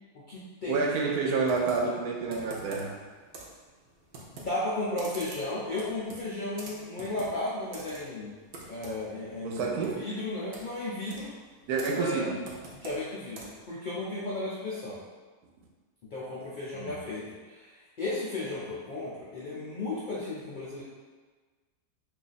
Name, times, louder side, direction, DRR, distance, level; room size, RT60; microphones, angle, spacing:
voice 1, 0.1-0.9 4.3-8.3 8.7-11.3 11.9-12.3 12.7-15.0 16.1-20.8, left 2 dB, 80° left, -8 dB, 0.4 m, -34 dB
voice 2, 0.7-2.9 9.4-10.1 11.7-12.4 16.7-16.9, right 4 dB, 85° right, 0 dB, 1.1 m, -29 dB
Computer keyboard, 1.4-13.7, right 2 dB, 65° right, 0.5 m, -47 dB
2.7 x 2.4 x 3.9 m, 1.4 s
omnidirectional pair, 1.6 m